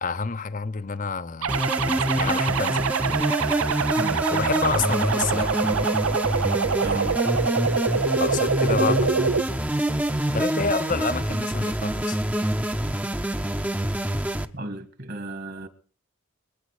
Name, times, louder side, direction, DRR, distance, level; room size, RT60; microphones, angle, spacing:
voice 1, 0.0-3.2 4.3-5.9 8.2-9.5 10.3-12.2, left 4 dB, 40° left, 0.7 m, -29 dB
sound 1, 1.4-9.4, right 5 dB, 85° right, 0.7 m, -25 dB
sound 2, 1.5-14.4, right 1 dB, 5° right, 0.8 m, -26 dB
voice 2, 6.8-7.2 14.5-15.7, right 1 dB, 50° right, 1.8 m, -34 dB
24.5 x 9.2 x 4.9 m
head